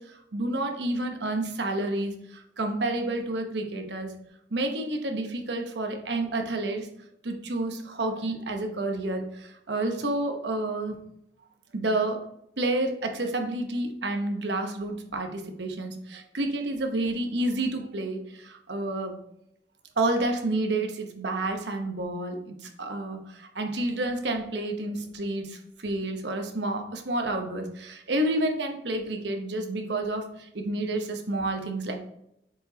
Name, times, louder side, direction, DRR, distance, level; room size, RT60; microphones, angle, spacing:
voice 1, 0.0-4.2 4.5-6.9 7.2-11.0 11.7-12.3 12.6-19.2 20.0-31.9, right 2 dB, 75° right, 4 dB, 1.0 m, -30 dB
7.3 x 4.8 x 2.8 m, 0.78 s
head